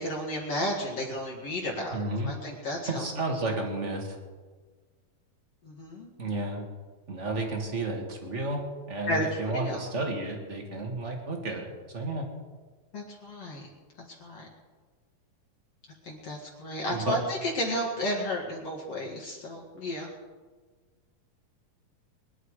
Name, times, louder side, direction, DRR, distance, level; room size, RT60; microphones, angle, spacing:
voice 1, 0.0-3.1 5.6-6.1 9.1-9.8 12.9-13.7 14.2-14.5 16.0-20.1, equal, 50° left, -3 dB, 2.8 m, -32 dB
voice 2, 1.9-2.3 2.9-4.2 6.2-6.6 7.1-12.3 16.9-17.2, right 2 dB, 30° right, 2 dB, 1.5 m, -32 dB
23.5 x 11.0 x 4.9 m, 1.4 s
omnidirectional pair, 4.3 m